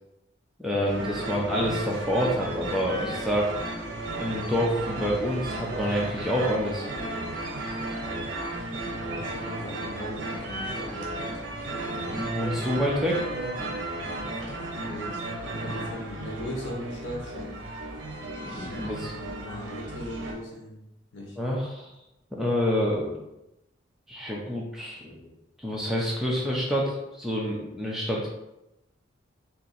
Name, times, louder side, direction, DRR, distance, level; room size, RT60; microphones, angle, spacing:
voice 1, 0.6-3.5 4.2-6.9 12.0-13.2 18.4-19.1 21.4-21.9 22.3-23.2 24.1-25.2 25.6-28.3, equal, ahead, -4 dB, 0.5 m, -27 dB
sound 1, 0.8-20.3, right 2 dB, 75° right, 0.6 m, -34 dB
voice 2, 8.8-11.4 14.8-15.2 15.5-17.5 18.8-20.8 21.1-21.4, left 1 dB, 70° left, -1 dB, 0.9 m, -39 dB
2.8 x 2.6 x 4.0 m, 0.89 s
head